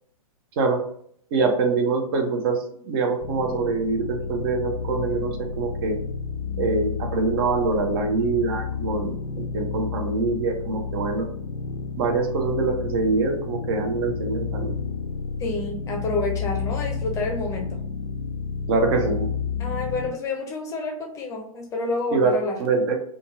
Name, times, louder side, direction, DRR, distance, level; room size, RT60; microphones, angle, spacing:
voice 1, 1.3-2.6 2.8-6.0 6.6-9.1 9.5-11.2 12.0-14.7 18.7-19.3 22.1-22.3 22.6-23.0, right 4 dB, 40° right, 3 dB, 0.7 m, -24 dB
sound 1, 3.2-20.1, left 5 dB, 70° left, 0.5 m, -31 dB
voice 2, 15.4-17.8 19.6-22.6, left 3 dB, 15° left, 1 dB, 0.6 m, -28 dB
3.8 x 2.3 x 2.6 m, 0.64 s
figure-of-eight pair, 115°, 19 cm